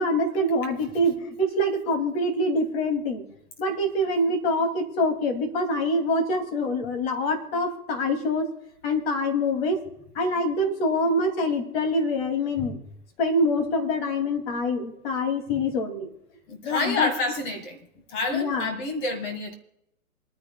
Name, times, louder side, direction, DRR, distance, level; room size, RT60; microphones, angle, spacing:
voice 1, 0.0-3.2 3.6-8.5 8.8-9.8 10.1-12.8 13.2-16.1 16.6-17.1 18.3-18.7, left 1 dB, 40° left, 2.7 m, -25 dB
voice 2, 16.5-19.5, left 2 dB, 25° left, 1.9 m, -29 dB
28.0 x 10.0 x 2.3 m
hypercardioid pair, 135°, 43 cm